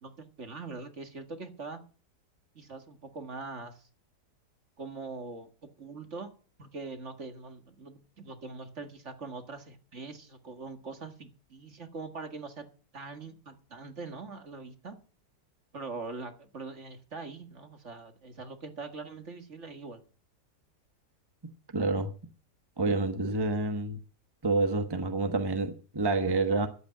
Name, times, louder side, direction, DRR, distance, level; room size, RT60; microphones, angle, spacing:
voice 1, 0.0-1.8 2.6-3.9 4.8-6.3 6.6-12.7 12.9-15.0 15.7-20.0, right 4 dB, 45° right, 1.9 m, -42 dB
voice 2, 21.7-22.1 22.8-24.0 24.4-26.7, right 3 dB, 15° right, 1.1 m, -28 dB
11.5 x 8.4 x 9.0 m
omnidirectional pair, 1.8 m